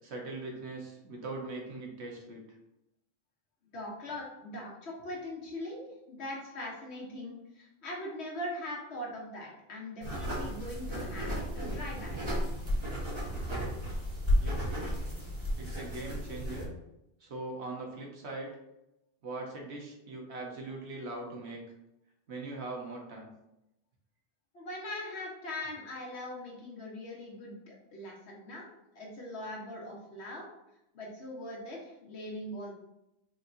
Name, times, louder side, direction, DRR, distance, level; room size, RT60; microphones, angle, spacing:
voice 1, 0.0-2.4 14.4-14.9 15.6-16.7 17.2-18.5 19.2-21.6 22.3-23.3, right 2 dB, 80° right, 0 dB, 1.3 m, -41 dB
voice 2, 3.7-12.2 24.5-28.7 28.9-30.5 30.9-32.7, left 1 dB, 80° left, -3 dB, 1.4 m, -41 dB
sound 1, 10.0-16.7, equal, 25° right, 1.2 m, -33 dB
4.9 x 3.2 x 2.6 m, 0.89 s
omnidirectional pair, 1.1 m